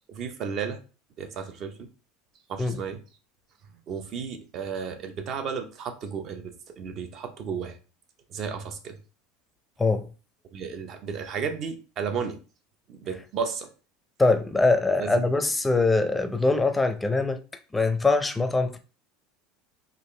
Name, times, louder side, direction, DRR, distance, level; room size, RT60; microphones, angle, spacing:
voice 1, 0.1-0.8 1.2-1.9 2.5-3.0 3.9-7.8 8.3-9.0 10.5-12.4 12.9-13.7 15.0-15.3, right 6 dB, 50° right, 0.7 m, -33 dB
voice 2, 14.2-17.4 17.7-18.8, left 3 dB, 10° left, 0.5 m, -23 dB
3.6 x 2.5 x 3.2 m
supercardioid pair, 105°, 0 cm